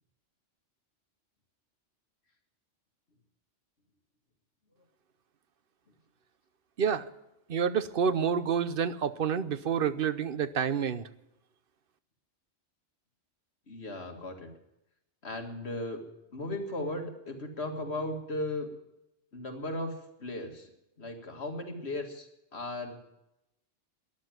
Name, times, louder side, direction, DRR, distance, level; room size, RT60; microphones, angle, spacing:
voice 1, 7.5-11.0, right 7 dB, 55° right, 13 dB, 0.9 m, -28 dB
voice 2, 13.7-14.5 15.2-16.0 16.3-18.7 19.3-20.7 21.0-23.0, left 1 dB, 60° left, 4 dB, 2.2 m, -36 dB
14.0 x 11.0 x 9.3 m, 0.87 s
omnidirectional pair, 1.2 m